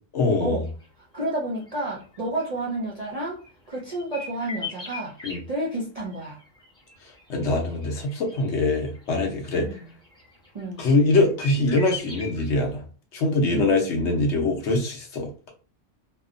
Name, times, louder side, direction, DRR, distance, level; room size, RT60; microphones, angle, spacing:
voice 1, 0.1-0.7 5.2-5.4 7.3-9.7 10.8-12.8 13.1-15.3, left 2 dB, 70° left, 2 dB, 0.9 m, -23 dB
sound 1, 0.7-0.9 1.2-1.4 1.7-2.8 3.4-5.4 6.1-9.1 9.6-11.1 11.4-12.4, left 4 dB, 5° left, 0.6 m, -39 dB
voice 2, 1.1-3.4 3.7-6.4 9.6-9.9 10.5-11.0 13.5-14.0, right 2 dB, 50° right, -4 dB, 0.5 m, -31 dB
2.8 x 2.0 x 2.4 m, 0.38 s
omnidirectional pair, 1.3 m